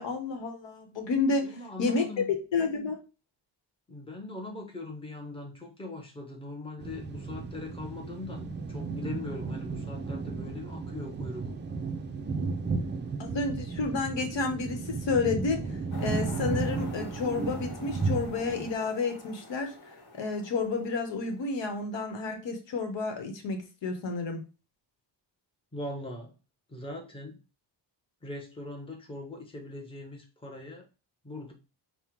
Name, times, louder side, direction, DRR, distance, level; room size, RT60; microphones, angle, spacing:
voice 1, 0.0-3.0 13.2-19.7 20.1-24.4, left 4 dB, 80° left, 1.1 m, -30 dB
voice 2, 1.4-2.3 3.9-11.4 25.7-26.3 26.7-27.4 28.2-30.9 31.2-31.5, left 2 dB, 10° left, 0.8 m, -40 dB
sound 1, 6.8-18.7, right 4 dB, 25° right, 0.4 m, -34 dB
sound 2, 15.9-21.5, left 2 dB, 60° left, 1.3 m, -46 dB
5.5 x 2.2 x 4.5 m
wide cardioid pair, 175°, 43 cm